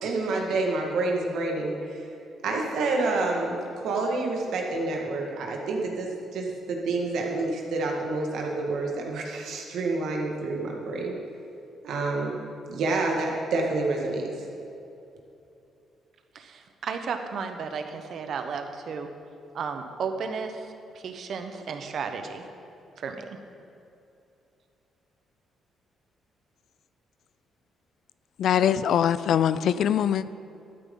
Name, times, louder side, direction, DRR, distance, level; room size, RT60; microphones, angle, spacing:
voice 1, 0.0-2.1 2.4-11.2 11.8-12.4 12.7-14.3, right 3 dB, 75° right, 0 dB, 1.7 m, -28 dB
voice 2, 16.3-19.1 19.5-20.5 21.0-22.5 23.0-23.2, right 5 dB, 60° right, 6 dB, 0.9 m, -33 dB
voice 3, 28.4-30.3, left 9 dB, 70° left, 15 dB, 0.3 m, -22 dB
12.5 x 9.2 x 3.8 m, 2.7 s
cardioid pair, 90°, 0 cm